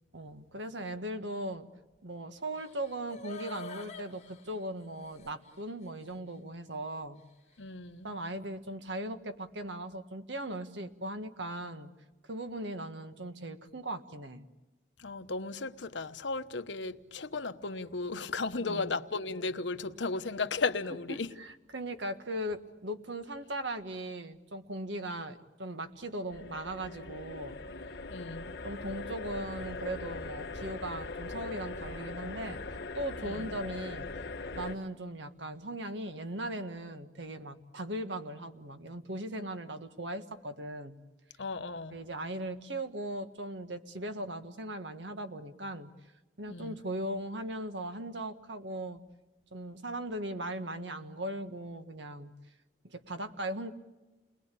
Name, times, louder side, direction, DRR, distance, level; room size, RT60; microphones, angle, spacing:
voice 1, 0.1-1.7 2.0-7.2 8.0-11.9 12.3-14.4 18.6-18.9 21.1-27.6 28.6-32.6 32.9-34.1 34.5-41.0 41.9-45.9 46.4-49.0 49.5-52.3 52.8-53.7, right 1 dB, 80° right, 1.7 m, -38 dB
sound 1, 2.5-5.6 6.0-6.1, left 2 dB, 35° left, 2.0 m, -46 dB
voice 2, 7.6-8.2 15.0-21.3 28.1-28.6 33.2-33.5 41.4-42.0 46.5-46.8, left 3 dB, 85° left, 1.1 m, -35 dB
sound 2, 26.3-34.7, left 3 dB, 60° left, 1.9 m, -41 dB
29.5 x 21.0 x 8.5 m
head